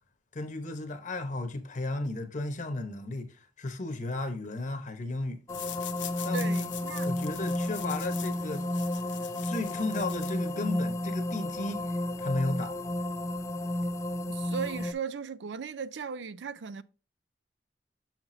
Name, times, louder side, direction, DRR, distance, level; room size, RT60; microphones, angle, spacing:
voice 1, 0.3-5.4 6.2-6.5 7.0-8.7 9.4-12.7, left 2 dB, 45° left, 1.0 m, -34 dB
sound 1, 5.5-10.8, left 12 dB, 90° left, 0.8 m, -44 dB
sound 2, 5.5-14.9, left 1 dB, 15° left, 0.4 m, -32 dB
voice 2, 6.3-7.1 14.3-16.8, right 6 dB, 75° right, 0.4 m, -37 dB
6.9 x 5.9 x 2.7 m
head